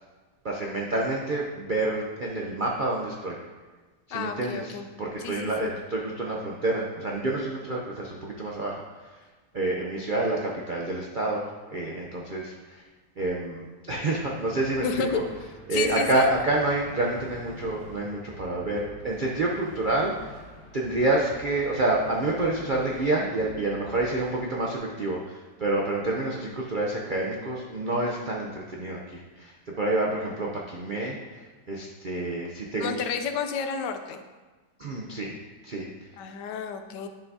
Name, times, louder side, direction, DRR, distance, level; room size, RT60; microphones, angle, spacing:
voice 1, 0.4-3.4 4.1-9.2 9.5-12.8 13.2-20.4 20.7-33.1 34.8-35.3 35.6-35.9, right 2 dB, 60° right, -2 dB, 0.5 m, -28 dB
voice 2, 4.1-4.9 5.2-5.7 14.8-15.2 15.7-16.3 32.8-34.2 36.2-37.1, left 6 dB, 80° left, 7 dB, 1.2 m, -31 dB
sound 1, 14.1-24.3, left 1 dB, 5° right, 1.9 m, -48 dB
10.5 x 5.7 x 2.7 m, 1.3 s
omnidirectional pair, 1.9 m